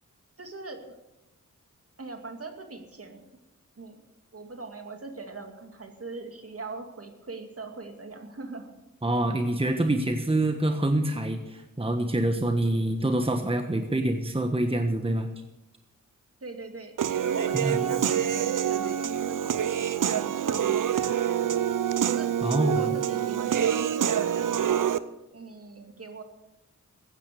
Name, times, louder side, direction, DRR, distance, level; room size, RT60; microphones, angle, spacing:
voice 1, 0.4-0.9 2.0-3.2 3.8-4.0 4.3-8.7 16.4-21.7 22.1-22.3 22.8-24.8 25.3-26.2, right 3 dB, 45° right, 5 dB, 2.4 m, -41 dB
voice 2, 9.0-15.3 17.5-17.9 22.4-22.8, right 1 dB, 15° right, 6 dB, 1.3 m, -26 dB
Human voice / Piano, 17.0-25.0, right 9 dB, 75° right, 0.7 m, -26 dB
15.5 x 9.8 x 6.9 m, 0.97 s
cardioid pair, 65°, 32 cm